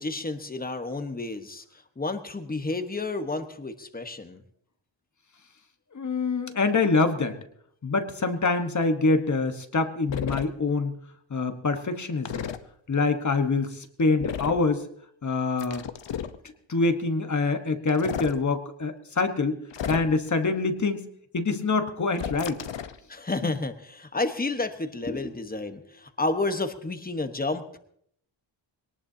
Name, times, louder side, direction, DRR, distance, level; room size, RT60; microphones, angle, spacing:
voice 1, 0.0-4.4 23.1-27.8, left 2 dB, 20° left, 8 dB, 1.2 m, -31 dB
voice 2, 5.9-7.4 7.8-10.9 11.3-12.5 12.9-14.9 15.2-15.9 16.7-19.6 19.9-22.6 23.4-23.5, left 3 dB, 35° left, 7 dB, 1.3 m, -25 dB
sound 1, 10.1-10.4 12.2-12.6 14.2-14.6 15.6-16.4 17.9-18.3 19.7-20.3 22.1-23.0, left 8 dB, 65° left, 1.0 m, -33 dB
22.0 x 18.5 x 2.8 m, 0.68 s
wide cardioid pair, 120°, 48 cm